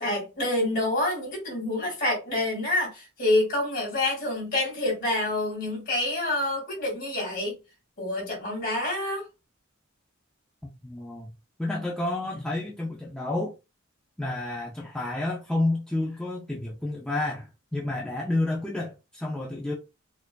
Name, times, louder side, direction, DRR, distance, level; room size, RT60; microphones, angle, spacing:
voice 1, 0.0-7.6 8.0-9.2, left 1 dB, 40° left, 2.0 m, -27 dB
voice 2, 10.8-11.3 11.6-13.5 14.2-19.7, left 2 dB, 5° left, 0.4 m, -30 dB
4.4 x 2.4 x 2.2 m
head